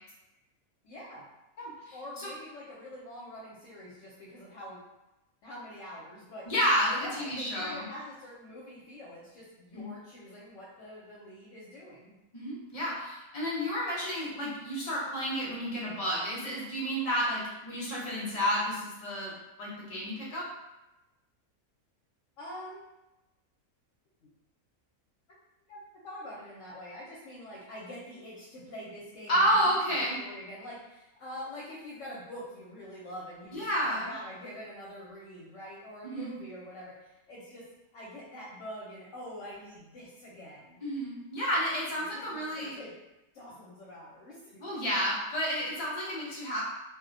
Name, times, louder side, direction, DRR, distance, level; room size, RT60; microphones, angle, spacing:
voice 1, 0.8-1.3 1.9-4.8 5.4-6.5 6.9-12.1 22.4-22.8 24.2-24.3 25.7-37.7 37.9-40.8 42.0-42.9 43.3-45.0, equal, 70° left, -5 dB, 0.9 m, -45 dB
voice 2, 1.6-1.9 6.5-7.8 9.7-9.9 12.3-19.3 19.6-20.4 29.3-30.2 33.5-34.1 36.0-36.3 40.8-42.7 44.6-46.6, equal, 40° left, -5 dB, 0.5 m, -30 dB
2.4 x 2.1 x 2.5 m, 0.97 s
omnidirectional pair, 1.5 m